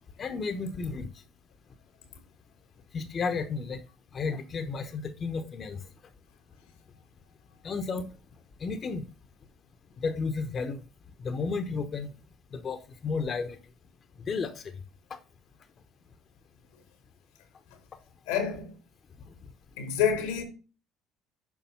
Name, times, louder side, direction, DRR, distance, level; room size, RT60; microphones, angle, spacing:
voice 1, 0.2-1.1 2.9-3.8 4.1-5.8 7.6-8.0 8.6-9.0 10.0-10.8 11.2-12.1 12.6-13.6 14.3-14.5, left 4 dB, 40° left, 1.0 m, -32 dB
voice 2, 18.3-18.7 19.8-20.4, left 8 dB, 85° left, 1.9 m, -27 dB
7.2 x 5.3 x 5.6 m
hypercardioid pair, 70°, 0 cm